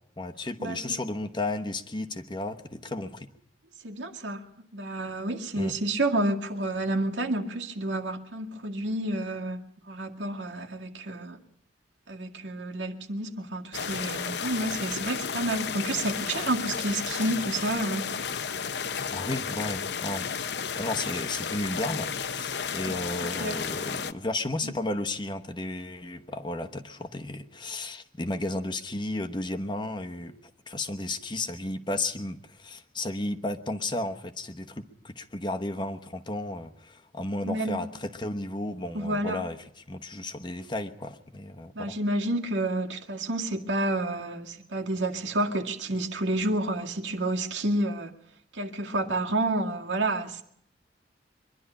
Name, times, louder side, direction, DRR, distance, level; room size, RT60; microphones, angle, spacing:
voice 1, 0.2-3.3 5.6-5.7 19.1-20.3 20.7-30.4 30.7-39.6 39.9-42.0, left 2 dB, 25° left, 1.1 m, -33 dB
voice 2, 3.8-4.4 4.7-11.4 12.1-18.1 22.8-22.9 23.4-23.6 24.6-24.7 37.5-37.8 38.9-39.4 41.8-48.1 48.5-50.4, right 2 dB, 85° right, 2.1 m, -30 dB
sound 1, 13.7-24.1, left 6 dB, 65° left, 0.8 m, -33 dB
23.5 x 12.0 x 9.9 m
head